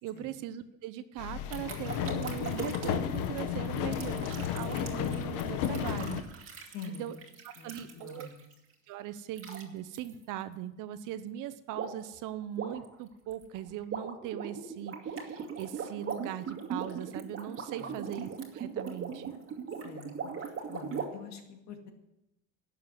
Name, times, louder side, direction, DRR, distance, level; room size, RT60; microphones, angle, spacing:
voice 1, 0.0-7.2 7.6-8.3 8.9-19.3, right 11 dB, 60° right, 13 dB, 0.9 m, -40 dB
sound 1, 1.2-6.2, left 10 dB, 70° left, 1.2 m, -33 dB
sound 2, 1.5-8.5 9.3-9.6 9.9-10.1 11.7-12.1 12.4-21.1, right 6 dB, 35° right, 2.2 m, -40 dB
voice 2, 6.7-7.1 7.6-8.4 17.8-18.0 19.8-21.9, left 6 dB, 50° left, 5 dB, 2.1 m, -46 dB
12.0 x 7.4 x 8.0 m, 0.89 s
cardioid pair, 135°, 35 cm